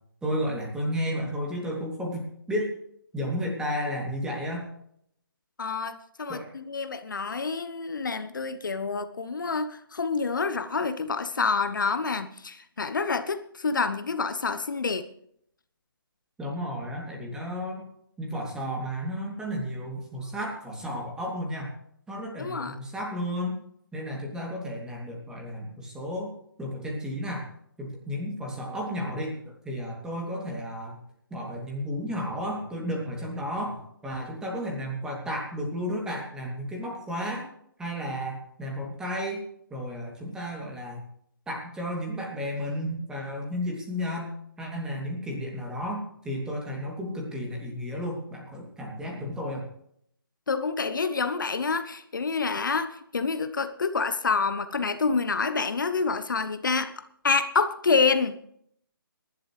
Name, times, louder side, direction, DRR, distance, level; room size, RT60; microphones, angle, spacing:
voice 1, 0.2-2.7 3.1-4.7 6.3-6.5 16.4-17.8 18.2-21.7 22.1-23.6 23.9-26.3 26.6-27.5 27.8-30.9 31.3-37.5 37.8-39.4 39.7-41.0 41.5-44.3 44.6-49.7, equal, 5° right, -1 dB, 2.8 m, -33 dB
voice 2, 5.6-15.1 22.4-22.8 50.5-56.9 57.2-58.4, left 4 dB, 60° left, 10 dB, 1.0 m, -27 dB
22.0 x 11.5 x 3.3 m, 0.69 s
figure-of-eight pair, 140°, 12 cm